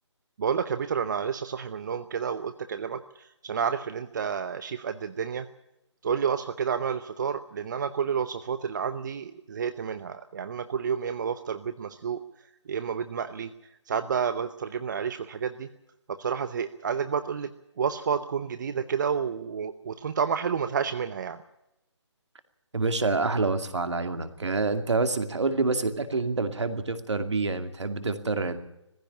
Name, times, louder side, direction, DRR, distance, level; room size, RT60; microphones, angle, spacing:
voice 1, 0.4-5.5 6.0-12.2 12.7-13.5 13.9-15.7 16.2-17.5 17.8-21.4, right 7 dB, 40° right, 11 dB, 0.8 m, -30 dB
voice 2, 22.7-28.6, right 3 dB, 65° right, 8 dB, 2.4 m, -27 dB
18.5 x 15.5 x 9.9 m, 0.87 s
figure-of-eight pair, 150°, 16 cm